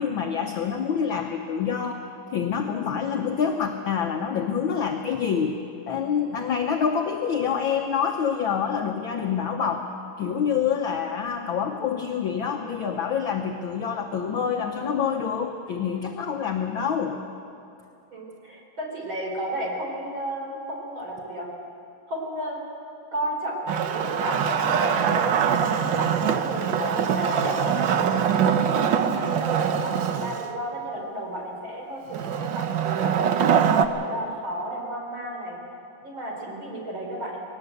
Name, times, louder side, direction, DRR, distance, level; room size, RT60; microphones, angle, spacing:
voice 1, 0.0-5.6 5.9-9.9 10.2-17.2, left 7 dB, 60° left, 3 dB, 1.3 m, -26 dB
voice 2, 18.1-21.5 22.1-22.6 23.1-28.8 29.1-35.6 36.0-37.4, right 1 dB, 40° right, -1 dB, 5.0 m, -33 dB
Wood, 23.7-30.5 32.1-33.9, right 8 dB, 80° right, 1.0 m, -23 dB
20.5 x 18.5 x 8.0 m, 2.5 s
omnidirectional pair, 3.3 m